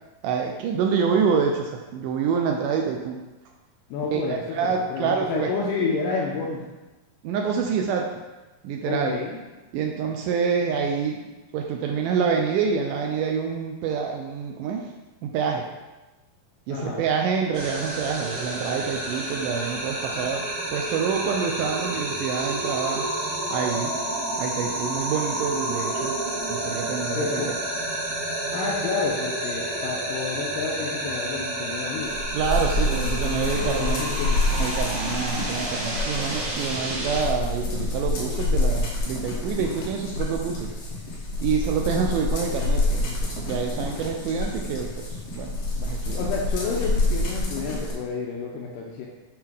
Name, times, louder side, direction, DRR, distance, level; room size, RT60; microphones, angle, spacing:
voice 1, 0.2-3.2 4.1-5.7 7.2-8.2 8.6-9.2 9.7-11.3 11.5-14.9 15.2-15.7 16.7-23.1 23.5-23.9 24.4-26.2 26.5-27.4 32.3-34.1 34.5-40.7 41.4-45.5 45.8-46.2, right 6 dB, 90° right, 1 dB, 1.8 m, -27 dB
voice 2, 3.9-6.7 8.8-9.4 16.7-17.1 27.1-27.5 28.5-32.2 32.9-34.5 46.2-49.1, left 4 dB, 80° left, -2 dB, 2.1 m, -30 dB
sound 1, 17.5-37.2, right 1 dB, 65° right, 4.0 m, -30 dB
sound 2, 32.0-47.9, left 2 dB, 60° left, 1.9 m, -27 dB
8.4 x 4.4 x 3.7 m, 1.1 s
omnidirectional pair, 4.3 m